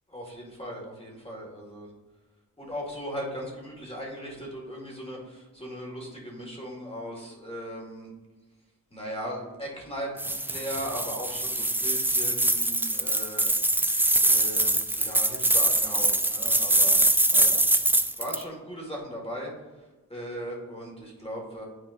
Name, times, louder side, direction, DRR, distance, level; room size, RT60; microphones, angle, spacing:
voice 1, 0.1-1.9 2.6-8.1 8.9-13.5 14.2-17.0 17.3-17.6 18.2-19.5 20.1-21.7, equal, 15° left, -2 dB, 1.9 m, -38 dB
sound 1, 10.2-18.4, right 1 dB, 5° right, 0.3 m, -23 dB
9.3 x 4.2 x 2.6 m, 1.2 s
cardioid pair, 60°, 35 cm